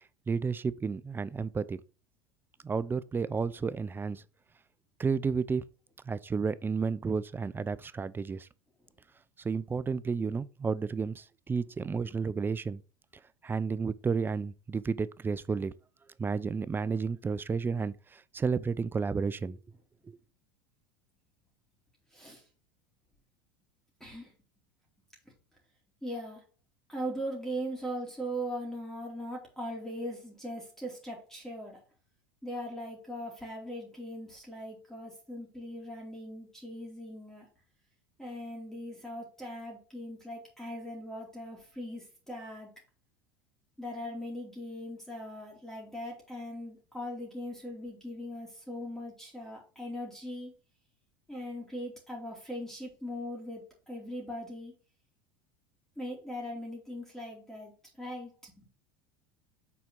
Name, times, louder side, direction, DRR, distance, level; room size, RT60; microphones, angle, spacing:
voice 1, 0.3-1.8 2.6-4.2 5.0-5.7 6.1-8.5 9.4-12.8 13.4-15.7 16.2-19.6 20.1-20.2, right 5 dB, 15° right, 0.4 m, -32 dB
voice 2, 22.1-22.4 24.0-24.3 26.0-26.4 26.9-31.8 32.4-37.5 38.2-42.7 43.8-50.5 51.3-54.7 56.0-57.7 58.0-58.7, equal, 5° left, 2.7 m, -40 dB
6.2 x 4.3 x 5.3 m
hypercardioid pair, 95°, 12 cm